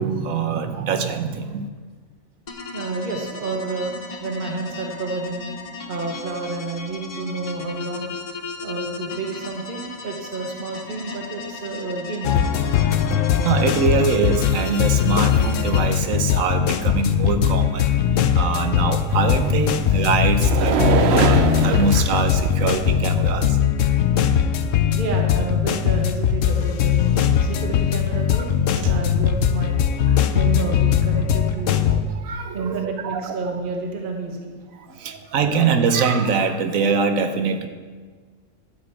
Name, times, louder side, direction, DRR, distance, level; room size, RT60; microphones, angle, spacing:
voice 1, 0.0-1.7 13.4-17.9 18.3-23.6 28.8-28.9 32.1-33.4 34.9-37.7, right 5 dB, 75° right, 8 dB, 1.3 m, -23 dB
sound 1, 2.5-15.8, left 4 dB, 30° left, 0.9 m, -36 dB
voice 2, 2.7-5.5 5.9-8.1 8.6-12.6 24.9-27.0 27.4-29.8 30.3-32.0 32.5-34.5 34.8-35.2, right 3 dB, 40° right, 2 dB, 1.2 m, -30 dB
sound 2, 12.2-32.0, left 9 dB, 70° left, 1.0 m, -20 dB
sound 3, 19.1-22.8, right 7 dB, 60° right, 0.8 m, -24 dB
12.0 x 5.1 x 8.4 m, 1.5 s
omnidirectional pair, 1.4 m